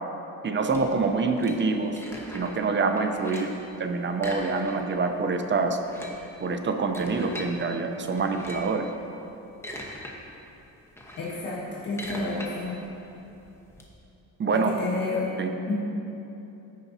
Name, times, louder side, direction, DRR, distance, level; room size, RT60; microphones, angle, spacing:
voice 1, 0.4-2.0 2.3-3.5 3.8-5.8 6.4-8.9 14.4-14.7 15.4-15.5, right 4 dB, 35° right, 6 dB, 0.6 m, -26 dB
sound 1, 0.7-2.7 3.0-3.6 4.1-5.1 5.3-5.4 5.7-7.5 8.2-8.8 9.3-10.1 10.5-13.8, equal, 5° left, 1.0 m, -41 dB
voice 2, 11.2-12.8 14.5-15.3 15.7-15.8, left 3 dB, 70° left, -8 dB, 1.8 m, -30 dB
15.0 x 5.1 x 2.7 m, 2.9 s
cardioid pair, 115°, 35 cm